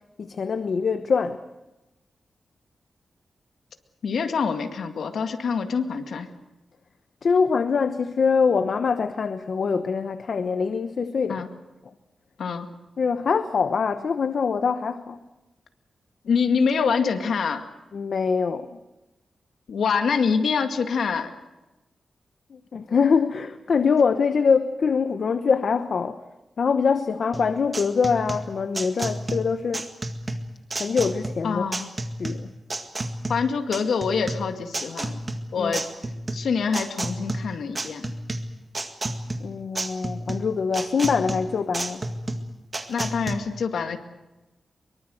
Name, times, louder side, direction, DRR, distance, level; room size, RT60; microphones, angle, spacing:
voice 1, 0.2-1.4 7.2-11.5 13.0-15.2 17.9-18.8 22.5-26.2 26.6-29.8 30.7-31.6 32.2-32.5 35.6-35.7 39.4-42.0, left 5 dB, 60° left, 10 dB, 1.0 m, -24 dB
voice 2, 4.0-6.3 11.3-11.5 12.4-12.7 16.2-17.6 19.7-21.3 31.4-31.9 33.3-35.2 35.5-35.8 36.3-38.1 42.9-44.0, left 5 dB, 85° left, 6 dB, 2.1 m, -25 dB
sound 1, 27.3-43.3, right 2 dB, 25° right, 1.9 m, -31 dB
23.5 x 23.0 x 7.9 m, 1.0 s
wide cardioid pair, 150°, 0 cm